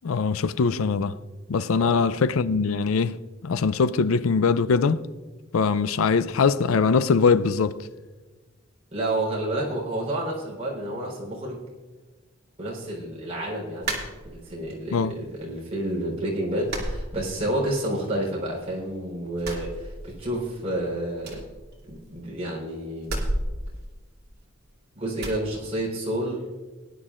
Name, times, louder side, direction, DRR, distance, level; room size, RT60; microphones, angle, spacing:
voice 1, 0.0-1.1 1.5-5.1 5.5-7.8 14.9-15.2, left 5 dB, 85° left, 0.5 m, -22 dB
voice 2, 8.9-11.6 12.6-14.0 14.2-21.4 21.9-23.2 25.0-26.5, right 1 dB, 30° right, 3.9 m, -30 dB
sound 1, 13.8-14.7 15.1-15.8 16.1-16.2 16.6-17.8 18.1-18.9 19.3-20.5 20.7-20.8 21.2-22.3 23.0-24.7 25.2-25.4, right 1 dB, 50° right, 2.4 m, -33 dB
20.0 x 10.5 x 2.5 m
head